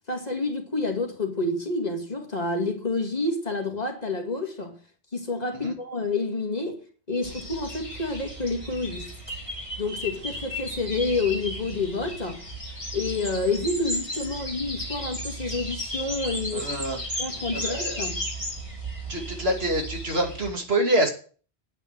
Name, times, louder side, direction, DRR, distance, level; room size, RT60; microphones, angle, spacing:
voice 1, 0.1-4.8 5.1-6.8 7.1-9.1 9.8-12.4 12.9-18.2, left 3 dB, 40° left, 2.3 m, -29 dB
sound 1, 7.2-20.5, equal, 40° right, 4.5 m, -34 dB
voice 2, 16.5-17.2 17.5-18.0 19.1-21.1, right 1 dB, 65° right, 2.8 m, -26 dB
9.4 x 9.0 x 7.4 m
omnidirectional pair, 1.1 m